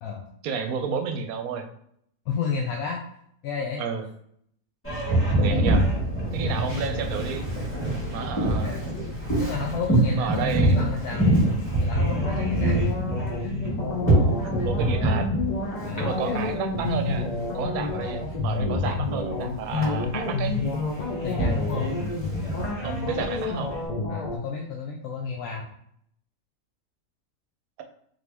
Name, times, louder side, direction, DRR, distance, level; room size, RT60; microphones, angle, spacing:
voice 1, 0.4-1.7 3.8-4.0 5.4-5.9 6.3-7.5 8.1-8.8 10.1-10.8 14.2-15.3 15.9-20.6 22.8-23.7, right 6 dB, 75° right, 6 dB, 1.0 m, -31 dB
voice 2, 2.3-3.0 3.4-3.8 6.5-6.9 8.5-8.9 9.4-11.3 11.8-13.5 15.8-16.5 17.9-18.0 18.8-19.0 19.7-20.2 21.2-21.9 24.1-25.7, left 6 dB, 90° left, 0 dB, 1.1 m, -32 dB
Boat Water vehicle, 4.8-23.8, right 1 dB, 10° left, 1.5 m, -26 dB
sound 1, 12.0-24.4, left 3 dB, 50° left, 0.5 m, -29 dB
3.9 x 3.0 x 3.4 m, 0.70 s
omnidirectional pair, 1.6 m